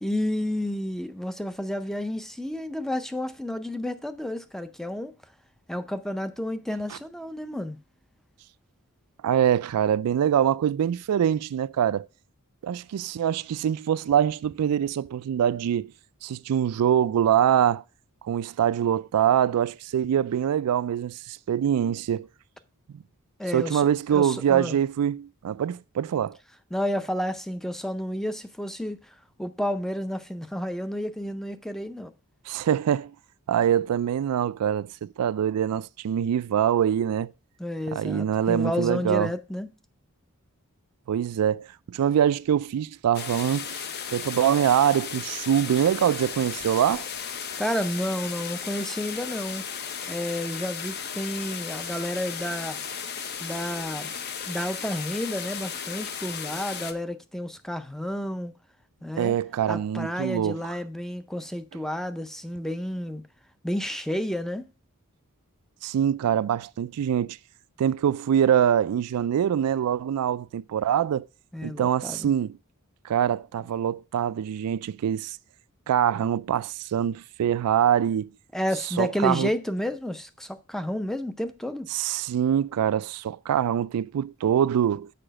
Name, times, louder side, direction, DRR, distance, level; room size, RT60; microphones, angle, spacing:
voice 1, 0.0-5.1 5.7-7.8 23.4-24.8 26.7-32.1 37.6-39.7 47.6-49.6 50.1-52.8 53.4-54.1 54.5-58.5 59.0-59.4 59.7-63.2 63.6-64.7 71.5-72.3 78.5-81.9, equal, ahead, 0.5 m, -31 dB
voice 2, 9.2-12.1 12.6-15.9 16.2-17.8 18.2-22.3 22.9-23.0 23.5-26.4 32.5-33.1 33.5-37.3 37.9-39.3 41.1-47.1 59.2-60.6 65.8-67.4 67.8-71.3 71.6-72.6 73.0-75.4 75.9-78.3 79.0-79.5 81.9-85.1, right 9 dB, 80° right, 0.3 m, -24 dB
sound 1, 43.1-56.9, left 7 dB, 45° left, 0.7 m, -35 dB
6.7 x 4.9 x 6.2 m
head